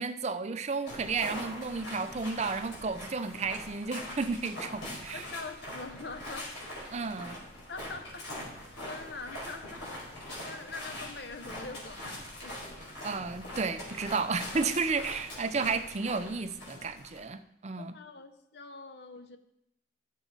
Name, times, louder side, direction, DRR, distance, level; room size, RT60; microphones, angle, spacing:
voice 1, 0.0-5.2 6.9-7.4 13.0-17.9, right 4 dB, 35° right, 10 dB, 0.5 m, -32 dB
sound 1, 0.9-17.2, left 1 dB, 90° left, 4.5 m, -42 dB
voice 2, 5.1-6.5 7.7-8.5 8.8-9.9 10.4-12.6 17.8-19.4, left 3 dB, 60° left, 7 dB, 0.8 m, -44 dB
12.5 x 7.6 x 4.0 m, 0.80 s
head